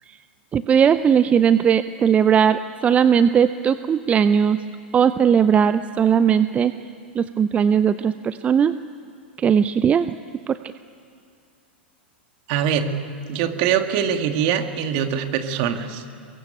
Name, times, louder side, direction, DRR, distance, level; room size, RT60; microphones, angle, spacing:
voice 1, 0.5-4.6 4.9-6.7 7.2-8.8 9.4-10.1 10.5-10.6, right 7 dB, 25° right, 13 dB, 0.6 m, -18 dB
voice 2, 12.5-12.9 13.3-16.0, right 8 dB, 50° right, 6 dB, 2.2 m, -23 dB
23.5 x 21.5 x 8.9 m, 2.3 s
hypercardioid pair, 100°, 6 cm